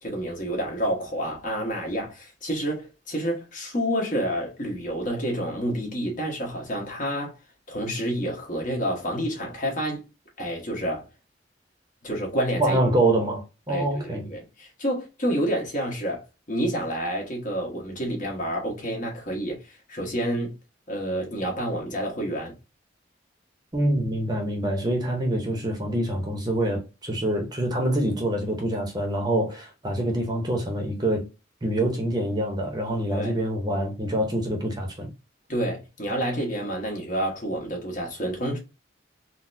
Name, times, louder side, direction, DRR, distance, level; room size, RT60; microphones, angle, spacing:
voice 1, 0.0-7.4 7.7-10.0 10.4-11.0 12.0-12.8 13.7-20.5 20.9-22.5 33.1-33.4 35.5-38.6, equal, 45° left, 1.3 m, -29 dB
voice 2, 12.6-14.3 23.7-31.2 31.6-35.1, right 1 dB, 20° right, 0.7 m, -25 dB
3.9 x 2.1 x 2.6 m
head